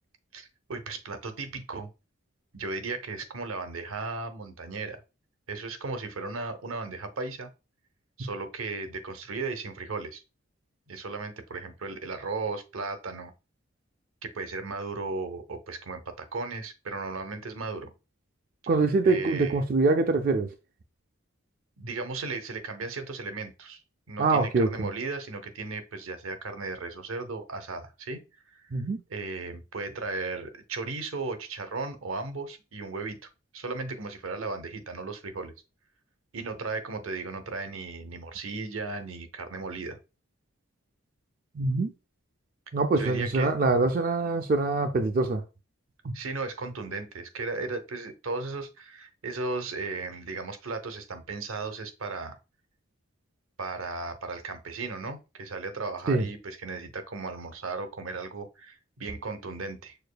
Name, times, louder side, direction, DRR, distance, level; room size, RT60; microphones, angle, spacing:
voice 1, 0.3-1.9 2.5-5.0 5.5-7.5 8.2-10.2 10.9-13.3 14.2-17.9 19.0-19.6 21.8-23.8 24.1-28.2 28.5-28.6 29.1-35.5 36.3-40.0 43.0-43.5 46.1-52.4 53.6-60.0, right 3 dB, 85° right, 0.7 m, -36 dB
voice 2, 18.7-20.5 24.2-24.9 28.7-29.0 41.6-41.9 42.7-45.4 46.0-46.1 56.1-56.3, right 3 dB, 45° right, 0.3 m, -24 dB
6.5 x 2.5 x 2.2 m
head